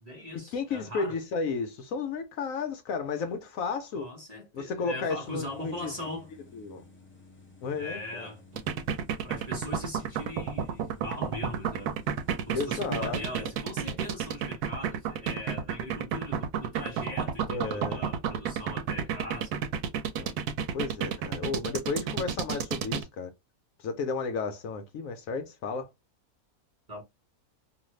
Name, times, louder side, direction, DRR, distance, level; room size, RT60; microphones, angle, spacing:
voice 1, 0.0-1.2 3.9-6.3 7.7-8.6 9.2-12.0 12.5-19.6 26.9-27.0, left 1 dB, 30° right, 0.9 m, -40 dB
voice 2, 0.5-4.1 4.5-5.9 6.5-6.8 7.6-8.3 12.5-13.5 17.5-18.0 20.2-20.3 20.7-23.3 23.8-25.9, left 4 dB, 70° left, 1.0 m, -33 dB
sound 1, 5.2-13.4, left 1 dB, 15° left, 0.4 m, -54 dB
sound 2, 8.6-23.0, right 7 dB, 85° right, 1.1 m, -30 dB
2.6 x 2.5 x 3.0 m
omnidirectional pair, 1.6 m